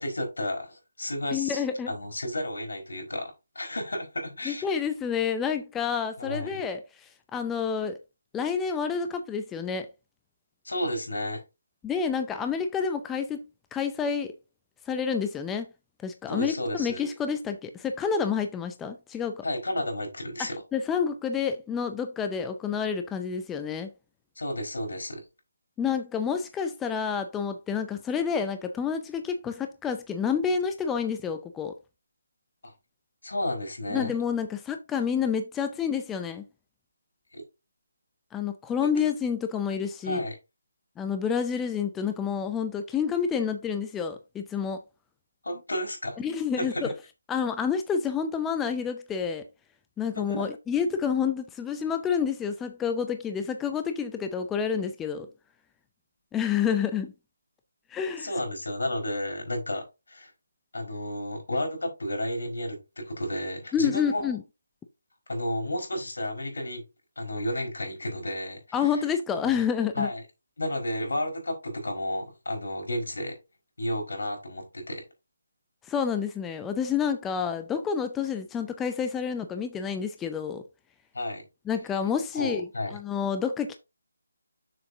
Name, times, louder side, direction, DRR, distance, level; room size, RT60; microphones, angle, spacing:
voice 1, 0.0-4.7 6.2-6.6 10.6-11.4 16.3-17.0 19.4-20.6 24.3-25.3 32.6-32.7 33.2-34.1 37.3-37.4 40.0-40.4 45.4-46.2 46.6-46.8 50.1-50.5 58.2-60.3 60.7-64.4 65.3-66.8 67.2-68.8 69.9-70.2 70.6-73.3 73.8-75.0 81.1-81.4 82.3-83.0, left 1 dB, 80° left, 4.7 m, -32 dB
voice 2, 1.3-1.9 4.5-8.0 8.3-9.9 11.8-13.4 13.7-14.3 14.9-15.7 16.0-19.4 20.7-23.9 25.8-31.7 33.9-36.5 38.3-40.2 41.0-44.8 46.2-46.9 47.3-49.4 50.0-55.3 56.3-57.1 57.9-58.3 63.7-64.4 68.7-70.1 75.8-80.6 81.7-83.8, left 7 dB, 10° left, 0.4 m, -29 dB
7.0 x 6.7 x 2.8 m
figure-of-eight pair, 165°, 0 cm